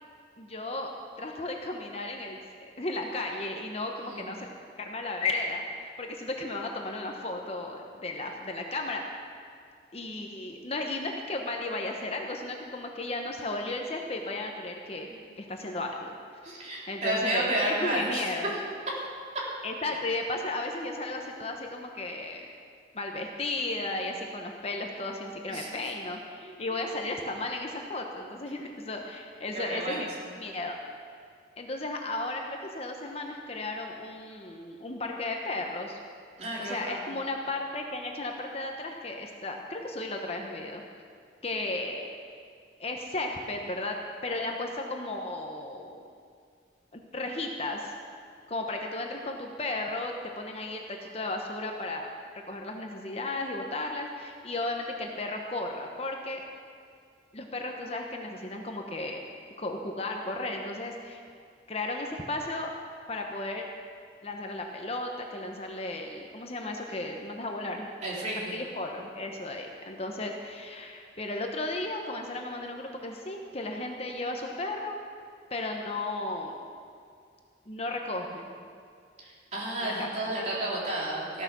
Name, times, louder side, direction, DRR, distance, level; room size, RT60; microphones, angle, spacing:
voice 1, 0.4-2.4 2.8-4.5 4.8-9.1 9.9-16.1 16.6-18.5 19.6-22.4 22.9-30.1 30.4-30.8 31.6-36.0 36.6-40.8 41.4-42.1 42.8-46.0 46.9-47.9 48.5-52.1 52.5-56.4 57.3-59.2 59.6-61.2 61.7-62.7 63.1-63.7 64.2-67.9 68.4-75.0 75.5-76.6 77.7-78.7 79.8-80.3, left 2 dB, 35° left, 2 dB, 1.0 m, -34 dB
voice 2, 16.4-18.3 25.5-25.7 26.4-26.8 29.5-30.3 36.4-37.1 68.0-68.6 79.5-81.4, right 1 dB, 40° right, -5 dB, 3.6 m, -31 dB
15.0 x 10.5 x 6.2 m, 2.3 s
head